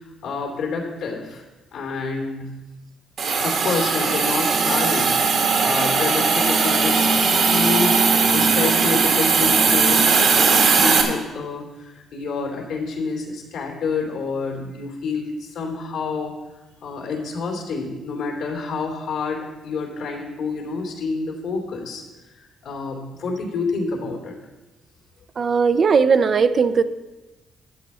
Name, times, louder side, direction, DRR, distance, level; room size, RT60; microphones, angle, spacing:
voice 1, 0.0-1.4 1.7-2.5 3.4-7.1 7.5-16.3 16.8-22.0 22.6-24.4, left 4 dB, 80° left, 1 dB, 2.8 m, -28 dB
Hiss, 3.2-11.0, right 5 dB, 65° right, 1.8 m, -18 dB
voice 2, 25.4-26.8, right 5 dB, 45° right, 11 dB, 0.5 m, -18 dB
13.5 x 7.4 x 4.4 m, 1.1 s
cardioid pair, 90°, 0 cm